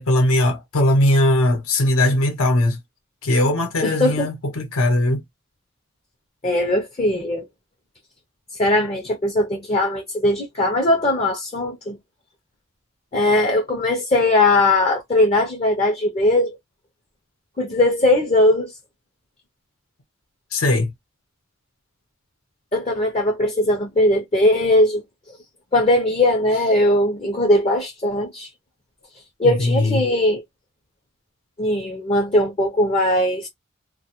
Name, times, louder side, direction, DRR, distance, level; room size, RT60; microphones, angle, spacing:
voice 1, 0.0-2.8 3.2-5.2 20.5-20.9 29.4-30.1, left 1 dB, 85° left, 0.7 m, -19 dB
voice 2, 3.8-4.3 6.4-7.4 8.6-12.0 13.1-16.6 17.6-18.7 22.7-25.0 25.7-28.5 29.4-30.4 31.6-33.5, left 1 dB, 30° left, 0.4 m, -19 dB
2.1 x 2.0 x 2.8 m
head